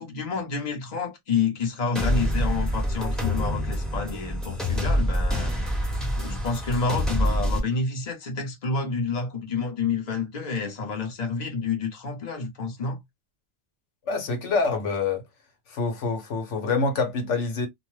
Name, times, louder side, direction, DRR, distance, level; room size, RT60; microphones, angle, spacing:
voice 1, 0.0-5.5 6.2-13.0, left 4 dB, 40° left, 1.0 m, -29 dB
sound 1, 2.0-7.6, equal, ahead, 0.8 m, -26 dB
voice 2, 14.1-15.2 15.7-17.7, left 4 dB, 90° left, 1.2 m, -26 dB
2.6 x 2.1 x 3.1 m
omnidirectional pair, 1.2 m